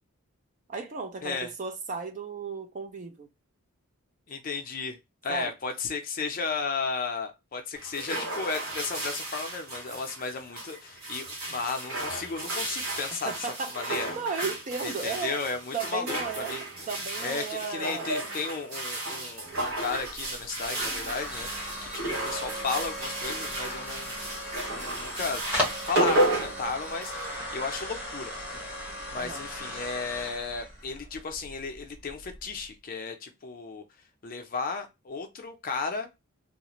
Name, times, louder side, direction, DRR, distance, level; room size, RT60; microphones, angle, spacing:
voice 1, 0.7-3.3 5.3-5.5 13.2-15.4 15.7-16.5 16.9-18.1 29.1-29.4, right 5 dB, 35° right, 0.3 m, -35 dB
voice 2, 1.2-1.5 4.3-5.0 5.2-13.5 13.7-14.1 14.8-16.6 17.2-21.5 21.8-24.2 24.7-28.6 29.1-33.8 34.2-36.1, left 4 dB, 40° left, 0.5 m, -34 dB
sound 1, 7.8-27.4, right 1 dB, 75° right, 0.8 m, -33 dB
sound 2, 19.9-32.7, equal, 5° right, 0.7 m, -37 dB
2.4 x 2.1 x 2.9 m
head